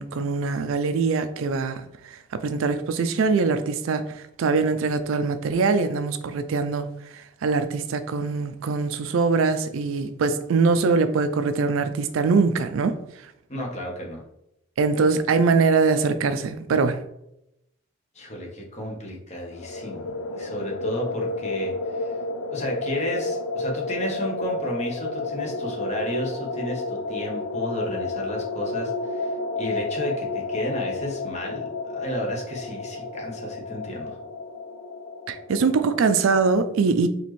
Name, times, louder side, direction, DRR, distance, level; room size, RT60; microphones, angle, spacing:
voice 1, 0.0-1.8 2.1-6.9 7.4-13.0 14.8-17.0 35.3-37.1, right 4 dB, 70° right, 0.4 m, -23 dB
voice 2, 13.5-14.2 18.1-22.2 22.5-34.2, equal, 30° left, 0.9 m, -32 dB
sound 1, 19.5-36.4, left 3 dB, 75° left, 0.5 m, -31 dB
4.1 x 3.0 x 3.1 m
head